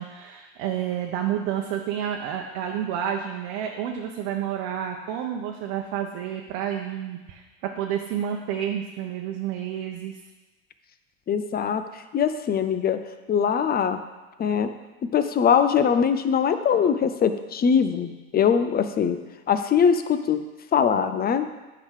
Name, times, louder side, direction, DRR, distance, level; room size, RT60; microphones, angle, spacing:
voice 1, 0.0-10.2, right 9 dB, 65° right, 1 dB, 1.0 m, -30 dB
voice 2, 11.3-11.8 12.1-13.0 13.3-14.0 14.4-14.7 15.1-19.2 19.5-20.4 20.7-21.5, left 7 dB, 30° left, 9 dB, 0.7 m, -22 dB
9.6 x 4.0 x 6.5 m, 1.1 s
supercardioid pair, 95°, 31 cm